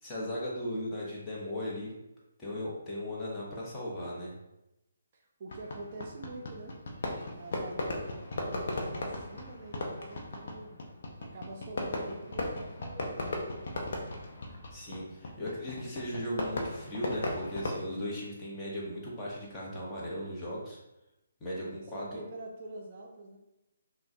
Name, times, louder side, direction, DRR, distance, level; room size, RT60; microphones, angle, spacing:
voice 1, 0.0-1.9 2.4-4.3 14.7-20.8 21.4-22.2, equal, 15° left, -6 dB, 0.9 m, -37 dB
voice 2, 5.1-6.8 7.3-10.8 11.2-14.1 21.4-23.4, right 2 dB, 35° right, 0 dB, 0.5 m, -46 dB
Fireworks, 5.5-17.8, left 2 dB, 45° left, 0.7 m, -37 dB
5.7 x 2.1 x 2.7 m, 0.92 s
figure-of-eight pair, 140°, 0 cm